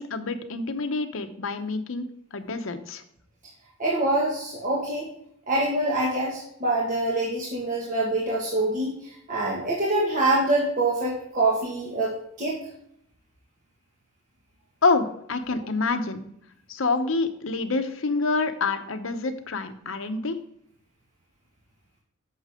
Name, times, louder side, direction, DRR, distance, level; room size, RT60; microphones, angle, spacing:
voice 1, 0.0-2.1 2.3-3.0 14.8-16.2 16.7-20.4, left 3 dB, 75° left, 8 dB, 0.8 m, -27 dB
voice 2, 3.8-5.1 5.5-12.6, right 2 dB, 40° right, -5 dB, 1.7 m, -25 dB
8.7 x 6.5 x 3.6 m, 0.71 s
head